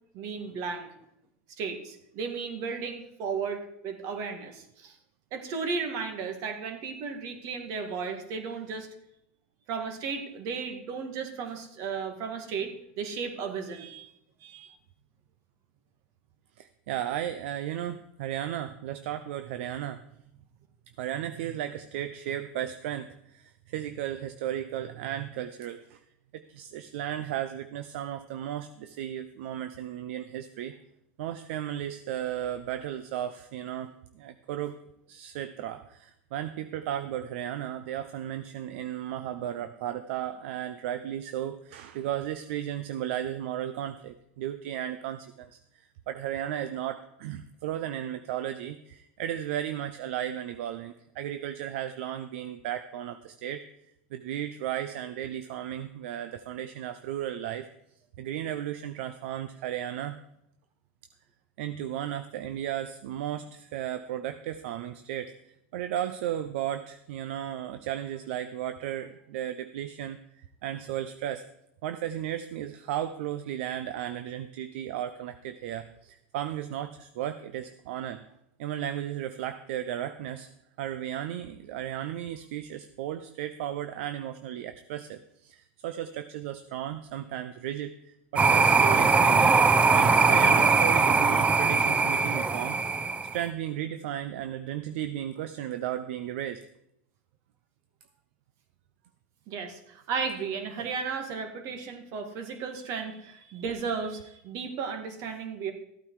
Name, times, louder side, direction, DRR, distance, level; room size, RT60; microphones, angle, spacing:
voice 1, 0.1-0.9 1.6-5.0 5.3-8.9 9.7-14.1 14.4-14.8 99.5-105.7, right 5 dB, 55° right, 6 dB, 2.1 m, -34 dB
voice 2, 16.6-20.0 21.0-26.0 26.3-30.8 31.2-34.8 35.1-53.6 54.1-57.7 58.2-60.2 61.6-65.3 65.7-71.4 71.8-78.2 78.6-80.5 80.8-89.6 89.9-92.8 93.3-96.6, right 11 dB, 70° right, 10 dB, 0.7 m, -35 dB
sound 1, 88.4-93.5, right 4 dB, 20° right, 0.8 m, -21 dB
14.0 x 8.9 x 4.8 m, 0.79 s
supercardioid pair, 110°, 7 cm